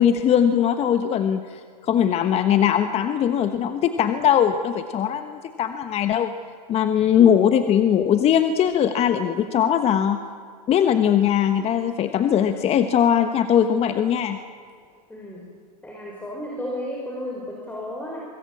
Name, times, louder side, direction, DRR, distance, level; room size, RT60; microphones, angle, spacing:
voice 1, 0.0-6.3 6.7-10.2 10.7-14.4, left 9 dB, 30° left, 9 dB, 1.2 m, -20 dB
voice 2, 15.1-15.5 15.8-18.2, left 1 dB, 10° left, -2 dB, 5.1 m, -33 dB
25.0 x 20.5 x 8.6 m, 2.2 s
hypercardioid pair, 120°, 21 cm